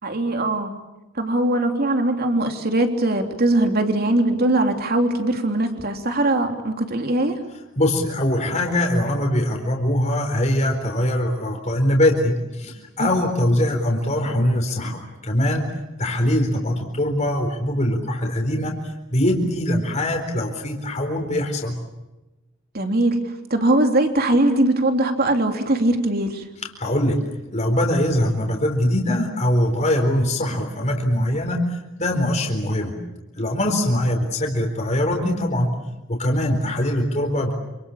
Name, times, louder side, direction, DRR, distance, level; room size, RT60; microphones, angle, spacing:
voice 1, 0.0-0.7 1.2-7.4 13.0-13.1 22.7-23.2 23.5-26.4, right 1 dB, 50° right, 5 dB, 3.3 m, -21 dB
voice 2, 7.8-15.7 16.0-21.8 26.8-27.2 27.5-32.9 33.3-35.7 36.1-37.5, left 1 dB, 35° left, 2 dB, 4.3 m, -22 dB
27.5 x 27.0 x 7.3 m, 1.0 s
head